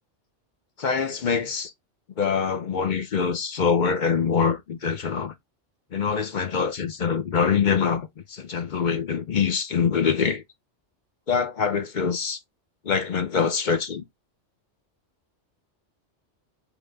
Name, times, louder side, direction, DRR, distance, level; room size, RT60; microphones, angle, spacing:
voice 1, 0.8-1.7 2.2-5.3 5.9-10.4 11.3-12.4 12.8-14.0, left 6 dB, 50° left, 0.7 m, -24 dB
5.1 x 3.1 x 3.2 m
omnidirectional pair, 1.2 m